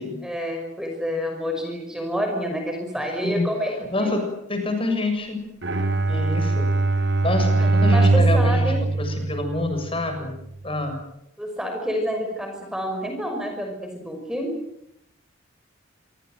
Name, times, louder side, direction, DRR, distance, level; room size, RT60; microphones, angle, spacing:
voice 1, 0.2-4.1 7.6-8.8 11.4-14.5, equal, 5° right, 3 dB, 5.6 m, -28 dB
voice 2, 3.8-5.5 6.1-6.8 7.2-10.3 10.6-11.0, left 2 dB, 25° left, 6 dB, 7.0 m, -27 dB
Bowed string instrument, 5.6-10.0, right 2 dB, 55° right, 3.3 m, -21 dB
28.0 x 24.5 x 7.9 m, 0.79 s
head